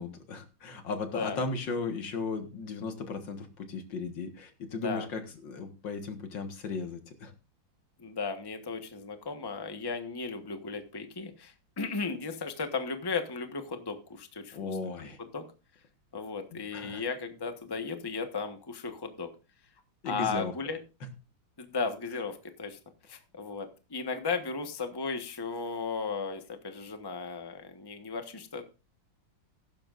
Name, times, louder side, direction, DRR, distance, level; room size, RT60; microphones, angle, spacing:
voice 1, 0.0-7.3 14.5-15.2 16.5-17.0 20.0-20.5, left 4 dB, 70° left, 6 dB, 2.3 m, -36 dB
voice 2, 8.0-15.4 16.1-19.3 20.0-20.8 21.6-22.8 23.1-28.6, left 4 dB, 15° left, 6 dB, 1.1 m, -35 dB
15.5 x 12.0 x 2.5 m, 0.31 s
omnidirectional pair, 2.1 m